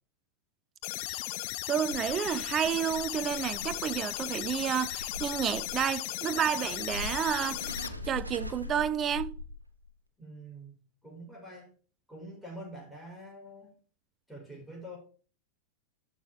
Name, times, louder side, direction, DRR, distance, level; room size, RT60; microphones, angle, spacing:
sound 1, 0.8-7.9, left 18 dB, 45° left, 0.6 m, -36 dB
sound 2, 1.6-9.9, left 2 dB, 85° right, 1.1 m, -43 dB
voice 1, 1.7-7.7 8.1-9.3, right 9 dB, 25° right, 0.6 m, -30 dB
voice 2, 10.2-11.7 12.1-13.8 14.3-15.0, right 1 dB, ahead, 5.2 m, -46 dB
12.5 x 6.2 x 3.5 m
figure-of-eight pair, 90°, 0 cm